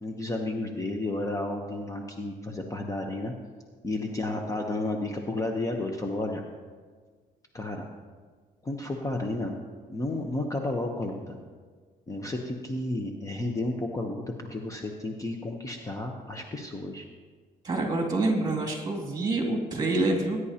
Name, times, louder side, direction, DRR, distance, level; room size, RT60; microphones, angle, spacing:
voice 1, 0.0-3.3 3.8-6.4 7.5-7.9 8.6-9.6 9.9-11.4 12.1-17.1, left 2 dB, 20° left, 2 dB, 0.9 m, -32 dB
voice 2, 17.6-20.4, right 2 dB, 25° right, 1 dB, 2.6 m, -27 dB
19.0 x 9.7 x 2.9 m, 1.5 s
cardioid pair, 110°, 17 cm